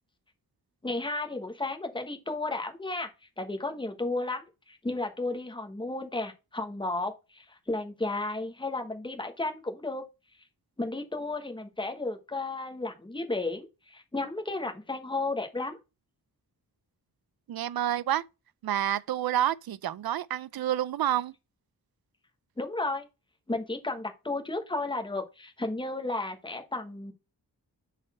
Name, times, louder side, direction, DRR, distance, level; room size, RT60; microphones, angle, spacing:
voice 1, 0.8-3.1 3.4-10.0 10.8-15.8 22.6-23.1 23.5-27.1, left 2 dB, 15° left, 1.1 m, -33 dB
voice 2, 17.5-18.2 18.6-21.3, right 12 dB, 70° right, 0.5 m, -28 dB
6.2 x 4.2 x 4.2 m
wide cardioid pair, 145°, 37 cm